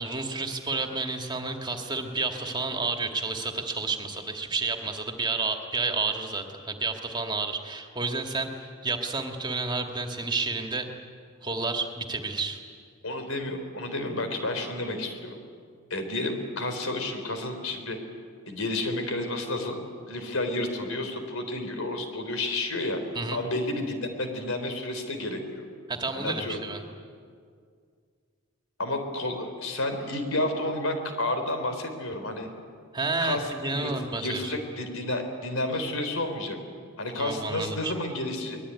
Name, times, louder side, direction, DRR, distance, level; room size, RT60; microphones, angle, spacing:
voice 1, 0.0-8.5 8.8-10.9 11.4-12.6 23.2-23.4 25.9-26.9 32.9-34.5 37.2-37.9, right 3 dB, 20° right, 4 dB, 2.1 m, -30 dB
voice 2, 13.0-15.4 15.9-18.0 18.5-23.0 23.3-25.7 26.1-26.6 28.8-32.5 33.2-33.9 34.2-36.6 37.0-38.6, left 2 dB, 90° left, 7 dB, 3.8 m, -31 dB
24.0 x 20.5 x 9.9 m, 2.1 s
head